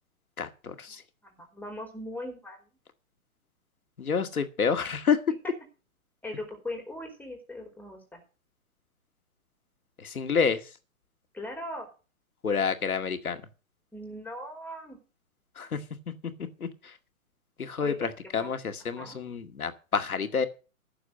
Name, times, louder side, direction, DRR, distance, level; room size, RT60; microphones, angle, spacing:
voice 1, 0.4-1.0 4.0-5.2 10.0-10.7 12.4-13.4 15.6-15.8 16.6-17.0 17.6-20.5, left 6 dB, 80° left, 8 dB, 2.1 m, -29 dB
voice 2, 1.2-2.7 6.2-8.2 11.3-11.9 13.9-15.0 17.8-17.9 18.2-18.6 19.0-19.2, left 1 dB, 5° left, 2 dB, 4.7 m, -39 dB
15.0 x 7.0 x 6.6 m, 0.34 s
hypercardioid pair, 125°, 42 cm